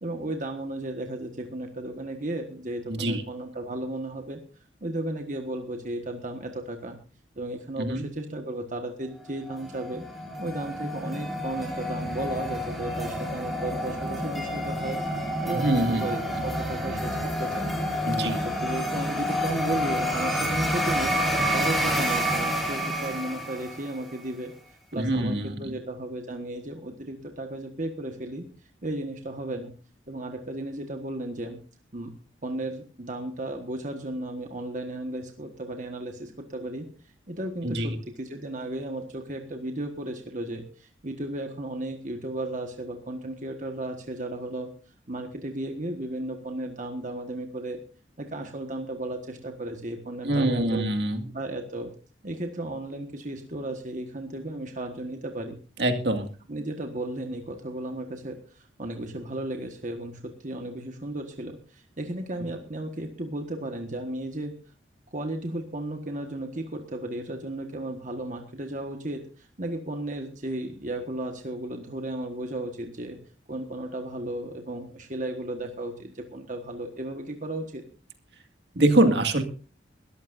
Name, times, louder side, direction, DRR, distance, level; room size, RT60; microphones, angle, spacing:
voice 1, 0.0-7.0 7.4-10.0 10.4-15.0 15.4-17.7 18.1-21.2 21.5-24.5 24.9-28.5 28.8-29.7 30.1-31.6 31.9-32.1 32.4-44.7 45.1-47.8 48.2-50.9 51.3-51.9 52.2-55.6 56.5-64.5 65.1-73.2 73.5-77.8, right 1 dB, 40° right, 4 dB, 1.5 m, -34 dB
voice 2, 2.9-3.2 7.8-8.0 15.5-16.1 18.1-18.4 24.9-25.7 37.6-38.0 50.2-51.2 55.8-56.3 78.8-79.4, right 1 dB, 60° right, 6 dB, 2.1 m, -24 dB
sound 1, 9.5-24.1, equal, ahead, 3.5 m, -29 dB
22.0 x 14.0 x 2.6 m, 0.36 s
head